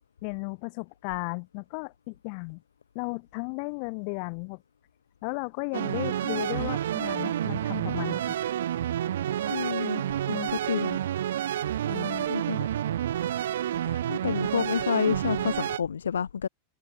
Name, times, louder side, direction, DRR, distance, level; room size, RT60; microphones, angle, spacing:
voice 1, 0.2-2.6 2.9-4.6 5.2-8.4 11.9-12.3, left 39 dB, 45° left, 2.1 m, -35 dB
sound 1, 5.7-15.8, right 11 dB, 60° right, 0.9 m, -29 dB
voice 2, 9.4-11.0 12.3-12.7 13.2-13.4 13.8-16.5, left 7 dB, 70° left, 1.0 m, -30 dB
figure-of-eight pair, 90°, 0 cm